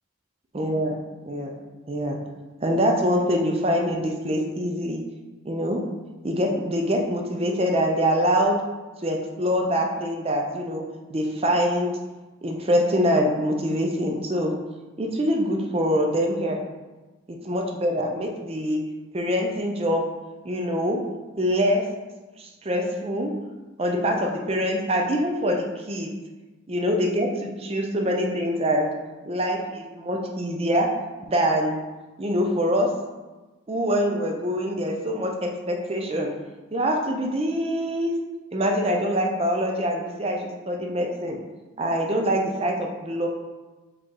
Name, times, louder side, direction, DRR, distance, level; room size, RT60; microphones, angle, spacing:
voice 1, 0.5-1.0 1.3-1.5 1.9-2.2 2.6-5.0 5.4-5.8 6.2-8.6 9.0-10.8 11.1-11.9 12.4-14.5 15.0-16.6 17.5-18.8 19.1-20.0 20.4-21.0 21.4-21.8 22.4-23.3 23.8-26.1 26.7-28.9 29.3-30.9 31.3-31.8 32.2-32.9 33.7-36.3 36.7-38.1 38.5-41.4 41.8-43.3, equal, 30° right, 1 dB, 0.5 m, -24 dB
4.9 x 2.9 x 3.7 m, 1.2 s
head